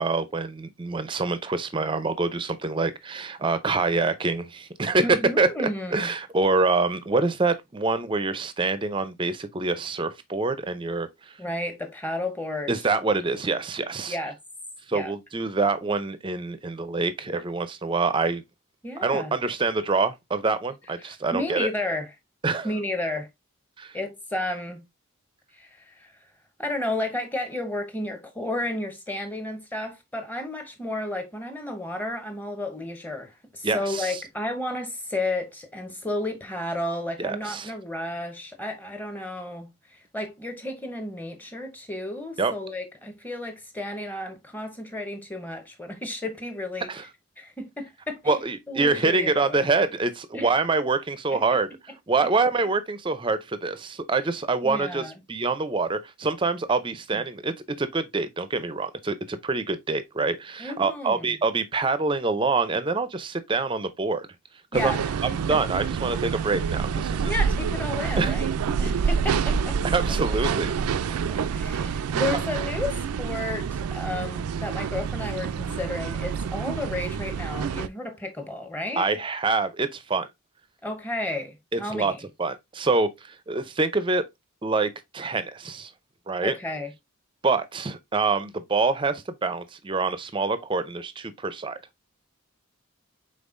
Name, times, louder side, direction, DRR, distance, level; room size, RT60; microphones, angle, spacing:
voice 1, 0.0-5.1 5.4-5.5 5.9-11.1 12.7-14.2 14.9-18.4 19.0-21.7 22.4-22.7 23.8-24.0 33.6-34.2 37.2-37.7 42.4-42.5 46.9-47.0 48.3-51.7 52.1-64.3 64.7-65.0 65.5-67.3 68.2-68.4 69.9-70.7 71.0-71.2 79.0-80.3 81.7-82.1 82.4-84.2 84.6-85.9 86.3-86.5 87.4-91.8, right 3 dB, 20° right, 0.4 m, -26 dB
voice 2, 5.0-6.1 11.4-12.7 14.1-14.4 14.9-15.1 18.8-19.3 21.0-22.1 22.6-23.3 23.9-24.8 25.5-26.1 26.6-47.1 47.4-48.4 48.7-49.7 50.3-50.5 51.3-51.4 52.2-52.3 54.6-55.2 57.1-57.2 60.6-61.4 64.7-65.1 65.5-65.6 67.3-68.5 68.8-69.8 71.3-79.1 80.8-82.2 86.4-86.9, left 1 dB, 10° left, 0.7 m, -32 dB
sound 1, 64.7-77.9, right 6 dB, 85° right, 0.4 m, -27 dB
5.3 x 3.8 x 2.5 m
head